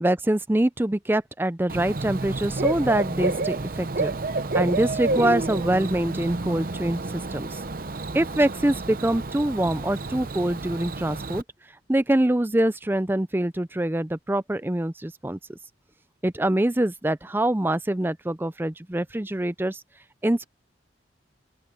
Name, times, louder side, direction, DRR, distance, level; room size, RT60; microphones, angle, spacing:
voice 1, 0.0-4.1 4.5-7.6 8.1-11.4 11.9-15.6 16.2-19.8 20.2-20.4, right 1 dB, 10° right, 0.5 m, -24 dB
Bird / Cricket, 1.7-11.4, right 2 dB, 50° right, 0.8 m, -29 dB
open air
head